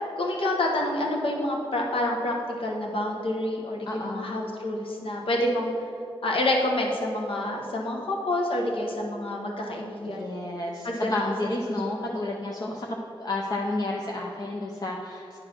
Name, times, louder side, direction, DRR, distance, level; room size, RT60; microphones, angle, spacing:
voice 1, 0.2-5.7 6.2-10.3 10.8-11.1 11.7-11.8 12.1-12.2, left 1 dB, 65° left, -1 dB, 1.2 m, -28 dB
voice 2, 3.9-4.5 10.0-15.4, left 2 dB, 40° left, -1 dB, 0.7 m, -31 dB
9.9 x 4.0 x 6.3 m, 2.7 s
wide cardioid pair, 120°, 10 cm